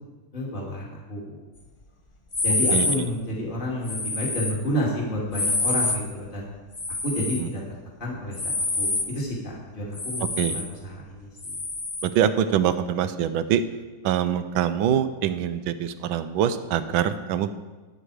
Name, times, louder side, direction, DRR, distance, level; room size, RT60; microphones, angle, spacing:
voice 1, 0.3-1.4 2.4-6.5 7.0-7.6 8.0-11.6, left 1 dB, 25° left, -3 dB, 2.4 m, -30 dB
sound 1, 2.3-3.0 3.8-4.6 5.3-6.0 6.7-7.5 8.3-9.1 9.9-10.7 11.4-12.1, left 2 dB, 55° left, 0.3 m, -26 dB
voice 2, 12.0-13.6 14.0-17.5, right 9 dB, 80° right, 12 dB, 1.4 m, -24 dB
12.5 x 9.0 x 4.8 m, 1.2 s
omnidirectional pair, 2.2 m